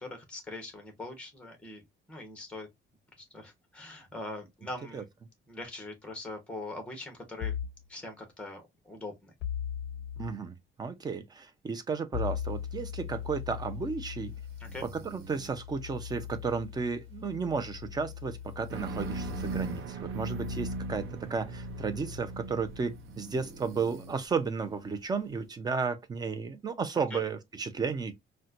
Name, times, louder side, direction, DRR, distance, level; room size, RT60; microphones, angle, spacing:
voice 1, 0.0-2.7 3.2-5.1 5.5-7.6 7.9-9.3 14.6-14.9 26.9-27.2, left 2 dB, 5° left, 1.0 m, -42 dB
sound 1, 7.4-7.8 9.4-10.3 12.1-23.5, left 9 dB, 65° left, 0.5 m, -40 dB
voice 2, 10.2-14.3 15.0-28.1, right 5 dB, 20° right, 0.4 m, -33 dB
sound 2, 12.4-25.5, right 3 dB, 85° right, 1.1 m, -53 dB
sound 3, 18.7-24.2, right 6 dB, 70° right, 0.6 m, -39 dB
4.1 x 2.2 x 2.5 m
cardioid pair, 180°, 20 cm